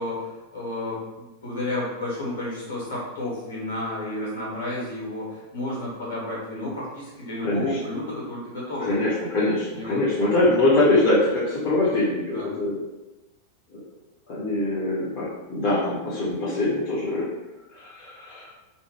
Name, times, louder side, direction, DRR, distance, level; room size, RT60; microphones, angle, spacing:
voice 1, 0.0-9.0 9.7-10.0 12.3-12.5, left 1 dB, 65° left, -6 dB, 1.3 m, -31 dB
voice 2, 7.4-7.8 8.8-12.8 13.7-13.8 14.3-17.2 17.7-18.5, left 2 dB, 45° left, -9 dB, 0.9 m, -23 dB
3.2 x 2.2 x 2.9 m, 1.1 s
figure-of-eight pair, 90°, 0 cm